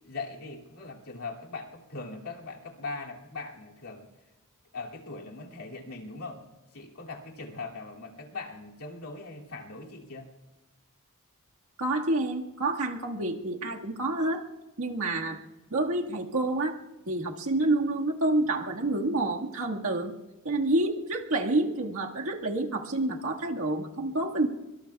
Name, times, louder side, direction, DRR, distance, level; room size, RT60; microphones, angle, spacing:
voice 1, 0.0-4.1 4.7-10.3, left 3 dB, 70° left, -2 dB, 2.6 m, -40 dB
voice 2, 11.8-14.4 14.8-15.4 15.7-16.8 17.1-20.1 20.4-24.5, right 2 dB, 70° right, 1 dB, 1.8 m, -28 dB
24.5 x 24.5 x 2.3 m, 1.1 s
head